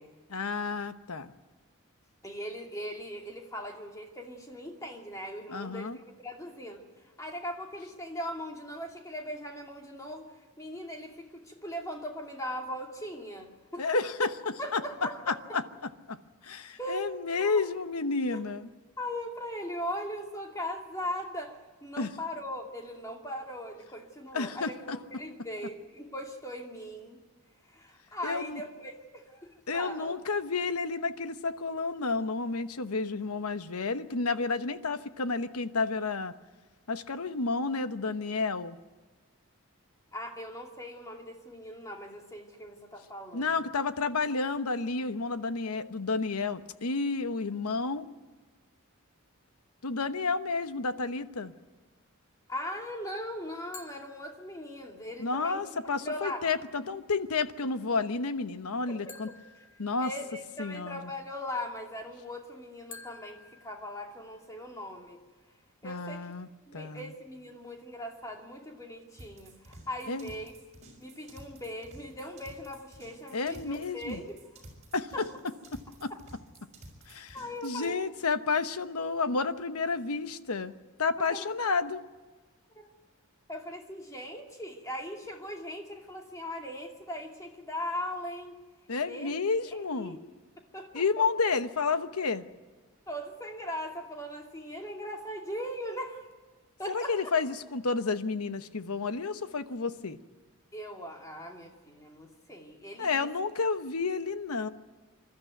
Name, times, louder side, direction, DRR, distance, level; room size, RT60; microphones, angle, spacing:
voice 1, 0.3-1.3 5.5-6.0 13.8-14.3 14.7-14.8 15.3-15.6 16.1-16.2 16.4-18.7 22.0-22.1 24.3-25.0 28.2-28.6 29.7-36.3 36.9-38.8 43.3-48.1 49.8-51.5 55.2-59.3 59.8-60.1 60.6-61.1 65.8-66.5 66.7-67.1 70.1-70.3 73.3-74.2 74.9-75.3 75.7-76.1 77.1-77.4 77.6-80.7 81.0-82.0 88.9-90.2 90.9-92.5 96.9-100.2 103.0-104.7, left 4 dB, 85° left, 11 dB, 1.0 m, -31 dB
voice 2, 2.2-6.8 7.2-14.0 14.6-15.6 16.8-17.1 17.4-17.7 18.3-18.4 19.0-27.2 27.7-30.2 40.1-43.5 52.5-55.6 56.0-56.5 59.1-59.2 59.6-59.7 60.0-65.2 65.8-66.3 66.7-70.5 71.0-74.3 75.1-75.3 76.1-76.2 77.3-78.0 81.3-81.5 82.7-82.9 83.5-88.5 89.0-89.3 89.7-90.2 90.7-91.3 93.1-96.2 96.8-97.3 100.7-103.3, equal, 15° left, 1 dB, 2.5 m, -39 dB
sound 1, 53.7-55.0 59.1-60.6 62.9-64.6, left 4 dB, 55° left, 2.6 m, -52 dB
sound 2, 69.2-77.9, right 1 dB, 30° right, 4.9 m, -52 dB
26.5 x 13.0 x 9.2 m, 1.4 s
head